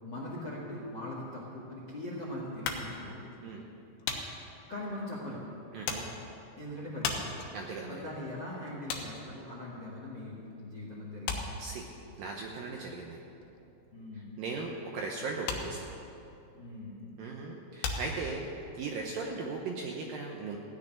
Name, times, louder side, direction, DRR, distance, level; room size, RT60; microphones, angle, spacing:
voice 1, 0.0-3.2 4.0-4.1 4.7-5.4 6.6-7.3 7.9-11.5 13.9-14.3 16.5-17.1, left 1 dB, 50° left, -4 dB, 1.3 m, -41 dB
sound 1, 2.6-10.5 10.8-18.8, left 5 dB, 80° left, 3.3 m, -39 dB
voice 2, 5.7-6.1 7.5-8.0 11.6-11.9 12.2-13.2 14.4-15.9 17.2-18.5 18.8-20.6, right 4 dB, 75° right, 0 dB, 2.1 m, -38 dB
16.5 x 6.6 x 9.9 m, 2.8 s
omnidirectional pair, 5.0 m